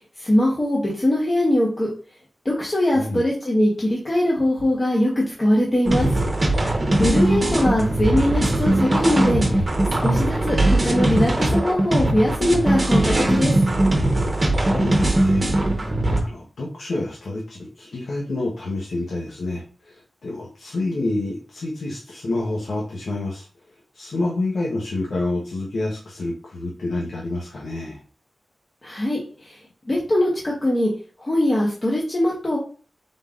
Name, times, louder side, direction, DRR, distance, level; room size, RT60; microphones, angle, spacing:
voice 1, 0.2-1.9 2.4-6.1 7.0-9.6 10.0-13.5 28.8-29.6 29.9-30.9 31.2-32.6, left 1 dB, 30° left, -4 dB, 1.1 m, -21 dB
voice 2, 2.9-3.3 7.2-7.5 14.6-15.9 16.2-20.0 20.2-23.5 23.9-28.0, left 2 dB, 90° left, -3 dB, 1.0 m, -28 dB
sound 1, 5.9-16.2, right 1 dB, 30° right, 0.9 m, -20 dB
5.2 x 3.7 x 2.4 m, 0.39 s
wide cardioid pair, 110°, 0 cm